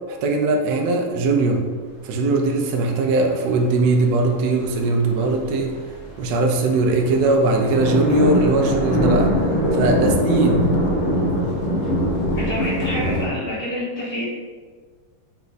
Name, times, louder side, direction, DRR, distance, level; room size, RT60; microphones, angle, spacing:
voice 1, 0.1-1.7 2.0-5.7 6.2-9.3 9.7-10.7, right 2 dB, 80° right, 2 dB, 1.0 m, -20 dB
sound 1, 3.0-3.1 3.3-13.2, equal, 80° left, 0.5 m, -23 dB
voice 2, 12.3-14.2, equal, 40° left, -10 dB, 1.5 m, -27 dB
4.3 x 2.4 x 3.9 m, 1.5 s
omnidirectional pair, 2.4 m